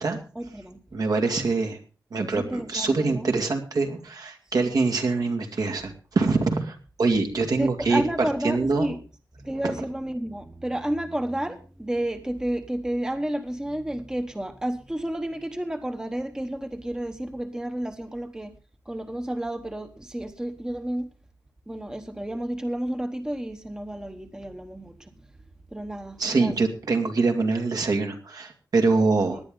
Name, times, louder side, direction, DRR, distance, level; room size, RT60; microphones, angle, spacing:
voice 1, 0.4-0.8 2.4-3.3 7.6-9.0 9.5-18.5 18.9-21.0 21.7-24.9 25.7-26.5 29.3-29.4, right 1 dB, 10° right, 7 dB, 1.1 m, -31 dB
voice 2, 0.9-1.8 2.1-8.9 9.5-9.8 26.2-29.4, right 3 dB, 70° right, 4 dB, 2.3 m, -24 dB
18.0 x 10.5 x 3.8 m, 0.35 s
wide cardioid pair, 155°, 7 cm